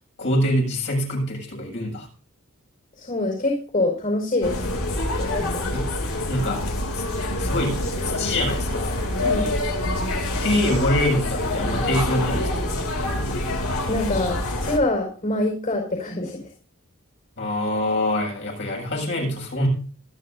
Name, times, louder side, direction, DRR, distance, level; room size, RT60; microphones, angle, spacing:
voice 1, 0.2-2.1 5.7-5.8 6.3-6.6 6.9-7.0 7.4-9.0 10.4-12.7 17.4-19.7, left 1 dB, 60° left, -1 dB, 7.2 m, -25 dB
voice 2, 3.0-4.5 5.2-5.6 9.2-9.5 13.9-16.5, left 2 dB, 40° left, 1 dB, 5.0 m, -25 dB
sound 1, 4.4-14.8, left 1 dB, 80° left, 2.9 m, -26 dB
26.5 x 10.0 x 2.7 m, 0.39 s
head